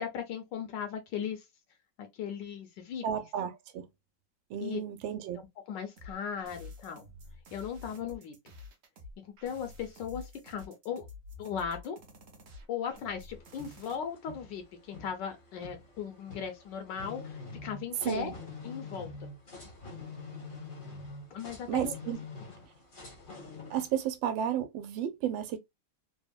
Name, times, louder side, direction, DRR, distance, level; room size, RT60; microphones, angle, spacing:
voice 1, 0.0-1.4 2.0-3.0 4.6-4.8 5.3-7.0 7.5-8.3 9.4-11.1 11.4-12.0 12.7-18.3 18.6-19.3 21.3-21.9, left 7 dB, 75° left, 1.2 m, -37 dB
voice 2, 3.0-3.9 4.5-5.4 18.0-18.3 21.7-22.2 23.7-25.6, right 9 dB, 85° right, 1.3 m, -32 dB
sound 1, 6.0-13.9, left 3 dB, 60° right, 0.6 m, -49 dB
sound 2, 13.3-24.0, left 3 dB, 40° left, 0.8 m, -46 dB
3.4 x 2.1 x 2.2 m
omnidirectional pair, 2.0 m